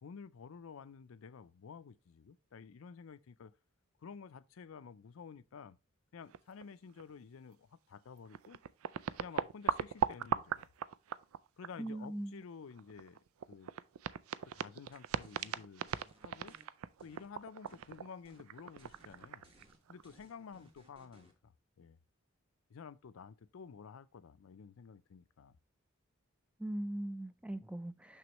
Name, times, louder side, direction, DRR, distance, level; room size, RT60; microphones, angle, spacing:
voice 1, 0.0-3.5 4.0-5.8 6.1-8.6 9.2-10.7 11.6-13.2 13.5-13.7 14.5-15.9 16.2-16.6 17.0-19.5 19.9-21.5 21.8-22.0 22.7-25.6 27.9-28.0, left 6 dB, 75° left, 0.4 m, -51 dB
sound 1, 6.3-6.7 7.0-7.1 8.0-8.1 8.3-12.0 12.4-20.1, right 8 dB, 85° right, 0.4 m, -38 dB
voice 2, 11.8-12.4 26.6-28.2, right 1 dB, 5° right, 0.4 m, -40 dB
sound 2, 14.9-16.6 17.0-18.0 18.2-18.5 18.8-21.3, right 1 dB, 25° right, 1.5 m, -64 dB
6.2 x 6.1 x 3.0 m
head